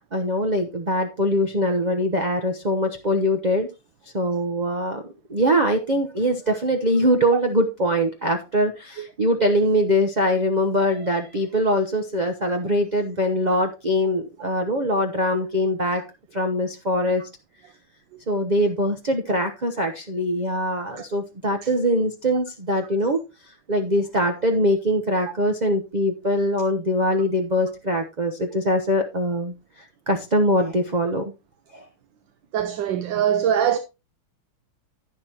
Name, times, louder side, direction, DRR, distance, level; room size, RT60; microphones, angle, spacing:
voice 1, 0.1-3.7 4.1-5.0 5.3-16.0 16.3-17.2 18.3-23.2 23.7-29.5 30.1-31.2 31.7-31.8, equal, 40° right, 0.6 m, -22 dB
voice 2, 32.5-33.8, right 9 dB, 65° right, 1.4 m, -22 dB
11.0 x 9.8 x 2.9 m
omnidirectional pair, 2.4 m